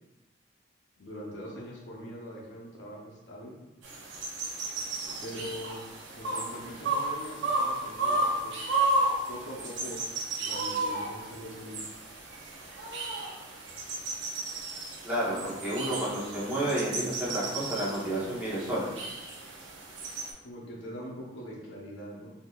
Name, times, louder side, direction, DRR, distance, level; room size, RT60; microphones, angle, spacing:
voice 1, 1.0-3.6 5.2-5.8 6.1-8.7 9.3-10.0 10.4-11.8 20.4-22.3, equal, 70° left, -3 dB, 0.7 m, -42 dB
sound 1, 3.8-20.3, right 2 dB, 70° right, 0.6 m, -33 dB
voice 2, 5.1-5.4 15.0-18.9, right 1 dB, 5° right, -9 dB, 0.8 m, -31 dB
3.6 x 2.7 x 2.3 m, 1.1 s
head